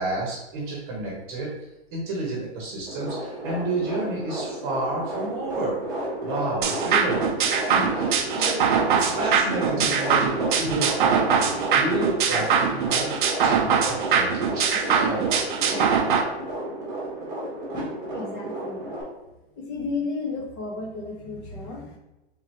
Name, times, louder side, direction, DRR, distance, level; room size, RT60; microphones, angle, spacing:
voice 1, 0.0-1.5 1.9-5.8 6.2-13.1 13.4-15.3 15.6-15.9, right 2 dB, 30° right, -3 dB, 1.0 m, -30 dB
sound 1, 2.9-19.0, right 1 dB, 10° right, 1.2 m, -32 dB
sound 2, 6.6-16.2, right 7 dB, 50° right, 0.6 m, -23 dB
voice 2, 18.1-18.9 19.6-22.0, left 3 dB, 20° left, 1 dB, 0.6 m, -33 dB
3.6 x 3.2 x 4.4 m, 0.98 s
hypercardioid pair, 165°, 32 cm